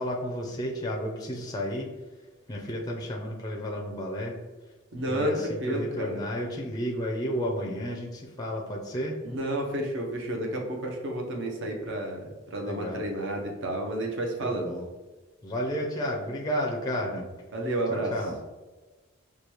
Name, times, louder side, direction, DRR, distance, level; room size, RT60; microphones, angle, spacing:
voice 1, 0.0-1.9 2.5-4.3 5.1-9.2 12.6-13.0 14.4-14.8 15.4-17.3 17.9-18.4, equal, 20° left, 0 dB, 0.4 m, -32 dB
voice 2, 4.9-6.2 9.2-14.7 17.5-18.2, right 1 dB, 60° right, 2 dB, 0.7 m, -31 dB
4.8 x 2.3 x 2.9 m, 1.2 s
head